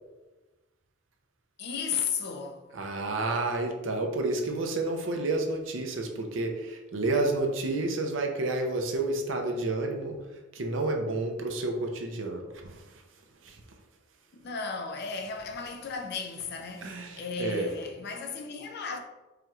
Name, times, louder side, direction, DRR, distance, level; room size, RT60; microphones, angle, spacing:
voice 1, 1.6-2.7 14.3-19.0, left 5 dB, 55° left, 0.5 m, -35 dB
voice 2, 2.7-10.2 10.5-12.8 13.4-13.6 16.8-17.7, right 2 dB, 75° right, 0.6 m, -30 dB
4.9 x 3.0 x 2.4 m
head